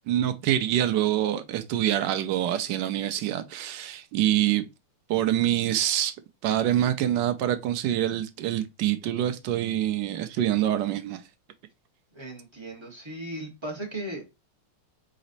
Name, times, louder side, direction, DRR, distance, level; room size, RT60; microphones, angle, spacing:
voice 1, 0.1-4.7 5.1-6.1 6.4-11.2, right 12 dB, 75° right, 1.0 m, -25 dB
voice 2, 12.1-14.2, right 1 dB, 20° right, 0.7 m, -37 dB
4.1 x 4.0 x 2.5 m
omnidirectional pair, 2.4 m